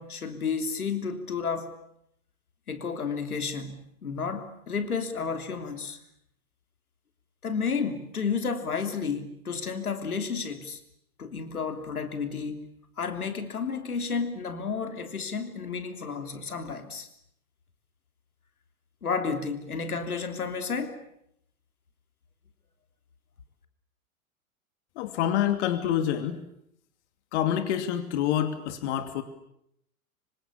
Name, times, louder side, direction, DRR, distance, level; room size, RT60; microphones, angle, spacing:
voice 1, 0.0-1.7 2.7-6.0 7.4-10.8 11.2-12.7 13.0-17.1 19.0-21.0, left 5 dB, 85° left, 8 dB, 3.4 m, -31 dB
voice 2, 25.0-26.4 27.3-29.2, left 10 dB, 50° left, 10 dB, 2.7 m, -27 dB
26.0 x 25.0 x 8.6 m, 0.74 s
hypercardioid pair, 110°, 43 cm